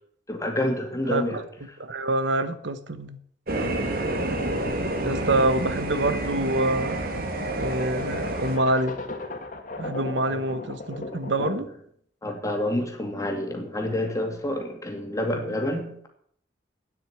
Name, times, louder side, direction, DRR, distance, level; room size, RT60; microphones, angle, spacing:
voice 1, 0.3-1.4 10.3-10.4 11.4-11.6 12.2-16.1, left 1 dB, 20° left, 3 dB, 2.3 m, -28 dB
voice 2, 1.1-1.4 1.8-3.2 5.0-7.0 7.6-9.0 9.8-11.7 15.3-15.4, right 2 dB, 75° right, 11 dB, 1.1 m, -26 dB
sound 1, 3.5-8.6, right 1 dB, 55° right, 2.0 m, -29 dB
sound 2, 4.7-11.8, left 2 dB, 45° left, 2.0 m, -38 dB
9.4 x 8.1 x 9.3 m, 0.65 s
head